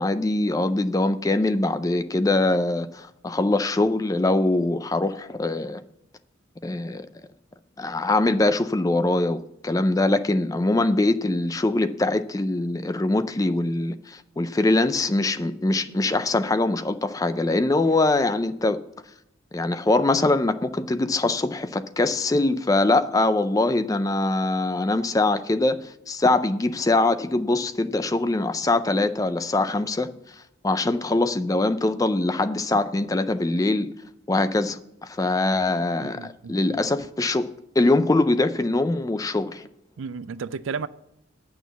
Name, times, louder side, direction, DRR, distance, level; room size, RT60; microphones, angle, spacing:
voice 1, 0.0-5.8 6.6-7.1 7.8-18.8 19.5-33.9 34.3-37.5 37.8-39.7, left 2 dB, 15° left, 0.4 m, -23 dB
voice 2, 36.0-36.8 40.0-40.9, right 5 dB, 80° right, 0.4 m, -33 dB
9.1 x 6.2 x 8.0 m
head